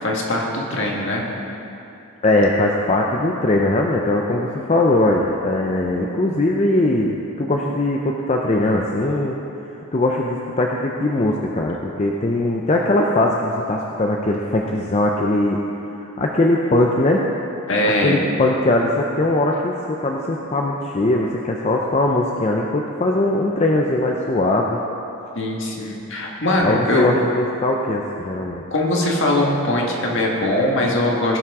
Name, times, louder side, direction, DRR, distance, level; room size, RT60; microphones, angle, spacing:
voice 1, 0.0-1.2 17.7-18.2 25.3-27.2 28.7-31.4, left 1 dB, 55° left, -1 dB, 1.7 m, -21 dB
voice 2, 2.2-9.4 9.9-15.6 16.2-17.2 17.8-24.8 26.6-28.6, left 2 dB, 30° left, 0 dB, 0.5 m, -20 dB
17.5 x 6.0 x 4.8 m, 2.9 s
head